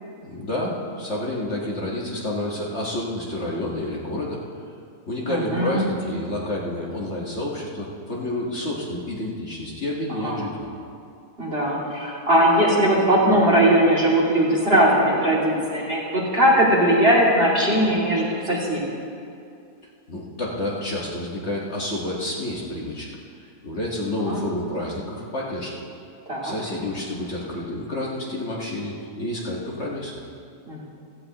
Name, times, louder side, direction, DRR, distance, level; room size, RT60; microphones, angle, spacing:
voice 1, 0.2-4.4 5.1-10.7 20.1-23.1 23.6-25.8 26.4-30.2, left 1 dB, 45° left, -4 dB, 1.8 m, -29 dB
voice 2, 5.3-5.8 10.2-10.4 11.4-18.8 24.3-24.4 26.3-26.5 30.7-30.9, right 1 dB, 40° right, -5 dB, 2.7 m, -19 dB
16.5 x 15.0 x 2.9 m, 2.4 s
omnidirectional pair, 1.6 m